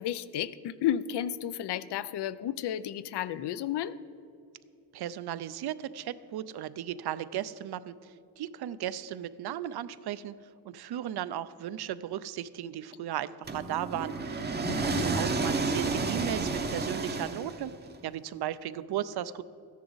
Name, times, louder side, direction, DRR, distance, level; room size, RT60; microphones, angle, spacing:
voice 1, 0.0-3.9 14.6-15.1, left 11 dB, 85° left, 16 dB, 0.5 m, -32 dB
voice 2, 4.9-17.7 18.0-19.4, right 11 dB, 70° right, 16 dB, 0.5 m, -36 dB
sound 1, 13.5-17.9, right 3 dB, 25° right, 0.6 m, -31 dB
14.0 x 10.5 x 3.9 m, 2.6 s
wide cardioid pair, 170°, 40 cm